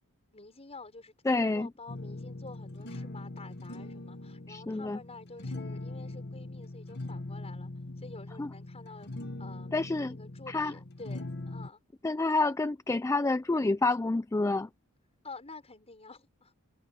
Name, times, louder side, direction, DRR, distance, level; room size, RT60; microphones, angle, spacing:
voice 1, 0.3-7.7 8.0-9.1 9.4-9.7 10.0-11.8 15.2-16.5, left 3 dB, 30° left, 6.1 m, -49 dB
voice 2, 1.3-1.7 4.5-5.0 8.4-8.5 9.7-10.2 10.5-10.7 12.0-14.7, left 2 dB, 15° left, 0.3 m, -28 dB
sound 1, 1.9-11.7, left 2 dB, 50° left, 1.7 m, -41 dB
head